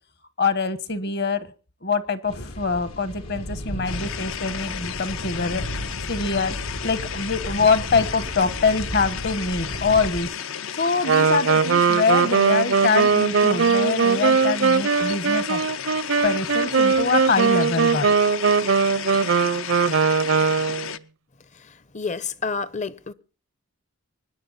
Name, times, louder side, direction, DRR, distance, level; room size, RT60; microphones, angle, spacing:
voice 1, 0.4-1.5 1.8-5.6 6.1-6.6 6.8-10.4 10.7-15.6 16.2-18.1, left 4 dB, 50° left, 1.2 m, -24 dB
sound 1, 2.3-10.2, equal, 90° left, 2.7 m, -34 dB
sound 2, 3.8-21.0, left 8 dB, 70° left, 0.6 m, -33 dB
Wind instrument woodwind instrument, 11.0-20.9, right 5 dB, 65° right, 0.6 m, -20 dB
voice 2, 21.6-23.1, left 5 dB, 35° left, 0.7 m, -30 dB
24.5 x 10.5 x 4.1 m
head